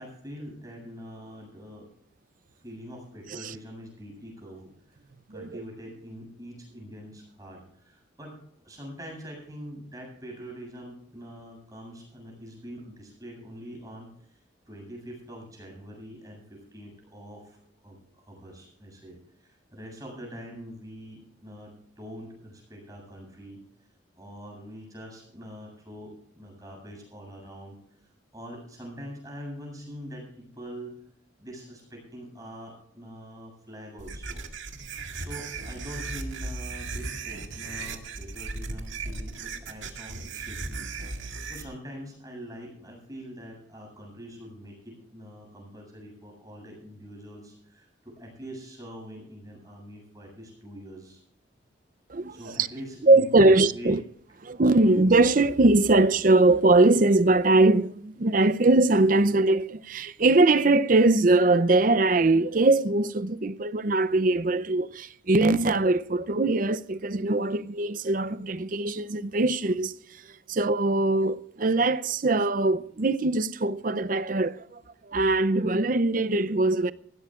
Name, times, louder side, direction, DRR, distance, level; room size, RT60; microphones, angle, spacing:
voice 1, 0.0-1.9 2.6-5.0 5.3-14.4 14.7-17.6 17.8-23.6 24.2-27.8 28.3-30.9 31.4-34.4 35.1-40.9 41.1-51.2 52.3-54.0, equal, 20° right, 7.7 m, -44 dB
sound 1, 34.0-41.6, right 3 dB, 80° right, 2.0 m, -36 dB
voice 2, 52.1-52.7 53.1-54.0 54.4-69.9 70.5-74.8 75.1-76.9, right 2 dB, 45° right, 0.6 m, -21 dB
19.5 x 16.5 x 2.5 m
head